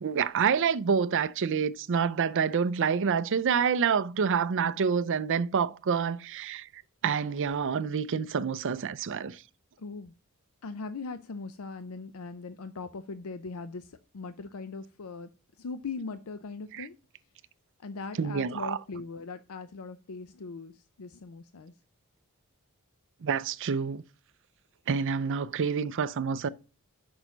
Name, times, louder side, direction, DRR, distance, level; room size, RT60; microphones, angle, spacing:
voice 1, 0.0-9.4 16.8-16.9 18.2-18.8 23.2-24.0 24.9-26.5, right 6 dB, 55° right, 0.5 m, -28 dB
voice 2, 9.8-10.1 10.6-15.3 15.6-17.0 17.8-21.7, left 4 dB, 70° left, 0.5 m, -40 dB
6.3 x 6.0 x 3.9 m
head